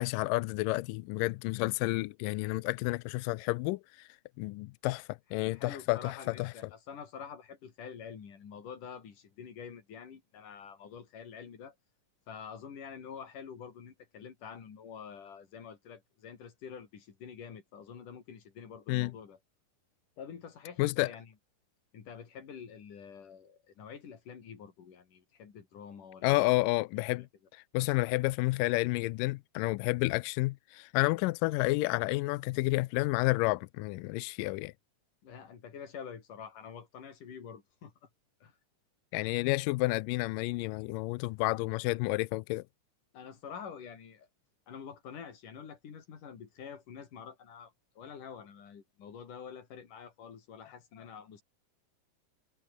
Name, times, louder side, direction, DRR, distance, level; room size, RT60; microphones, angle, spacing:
voice 1, 0.0-4.1 4.4-6.5 18.9-19.1 20.8-21.1 26.2-27.3 27.5-34.7 39.1-42.6, left 22 dB, 80° left, 2.0 m, -30 dB
voice 2, 5.5-11.8 12.3-19.4 20.2-21.3 21.9-26.6 27.0-27.3 35.2-38.1 38.4-38.5 43.1-44.3 44.7-51.4, left 7 dB, 60° left, 4.7 m, -47 dB
omnidirectional pair, 4.3 m